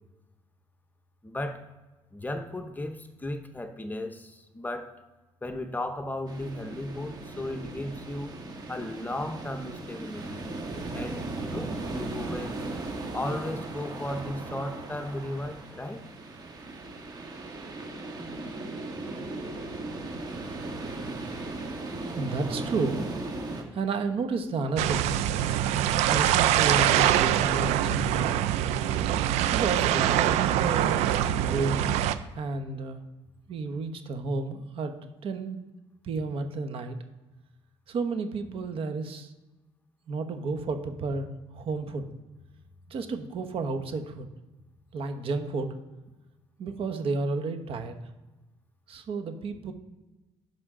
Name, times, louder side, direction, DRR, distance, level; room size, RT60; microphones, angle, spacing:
voice 1, 1.2-1.7 2.1-5.0 5.4-8.3 8.7-10.5 10.9-12.7 13.1-16.0, left 1 dB, 15° left, 7 dB, 0.8 m, -35 dB
sound 1, 6.3-23.6, right 2 dB, 35° right, 1.6 m, -37 dB
voice 2, 22.1-23.0 23.7-25.1 26.1-28.3 29.5-31.0 31.4-31.9 32.3-33.0 33.5-34.9 35.2-35.6 36.0-37.0 37.9-39.3 40.1-42.0 42.9-44.3 44.9-45.8 46.6-47.9 48.9-49.7, right 3 dB, 55° right, 7 dB, 1.1 m, -31 dB
sound 2, 24.8-32.2, right 11 dB, 85° right, 0.5 m, -24 dB
10.5 x 6.0 x 3.8 m, 1.1 s
cardioid pair, 95°, 11 cm